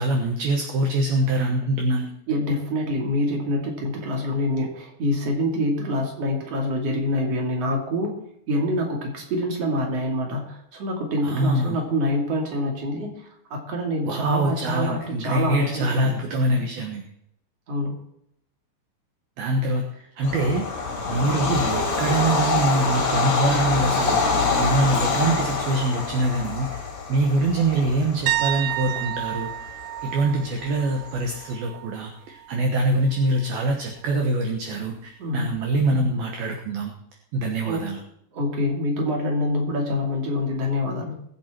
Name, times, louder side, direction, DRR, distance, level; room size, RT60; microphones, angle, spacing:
voice 1, 0.0-2.1 11.2-11.8 14.0-17.0 19.4-20.7 21.1-29.5 30.0-36.9 37.3-38.0, right 2 dB, 65° right, 3 dB, 2.4 m, -24 dB
voice 2, 2.3-8.2 8.5-16.1 17.7-18.0 35.2-35.5 37.6-37.9 38.3-41.2, left 1 dB, 40° right, 1 dB, 3.1 m, -26 dB
Bird vocalization bird call bird song / Train, 20.2-31.4, left 4 dB, 45° left, 1.6 m, -26 dB
sound 1, 28.3-32.0 32.3-32.7 35.6-35.7, right 15 dB, 85° right, 3.4 m, -30 dB
21.5 x 8.6 x 4.5 m, 0.75 s
omnidirectional pair, 5.9 m